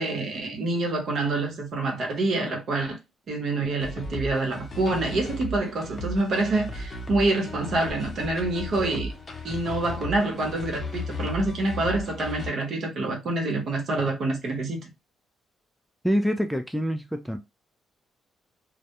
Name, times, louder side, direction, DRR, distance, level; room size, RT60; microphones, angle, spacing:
voice 1, 0.0-3.0 3.3-9.1 9.4-14.9, right 2 dB, 60° right, 0.9 m, -27 dB
sound 1, 3.8-12.5, left 1 dB, 30° left, 0.7 m, -35 dB
voice 2, 16.0-17.4, equal, ahead, 0.3 m, -26 dB
2.2 x 2.1 x 2.9 m
cardioid pair, 90°, 0 cm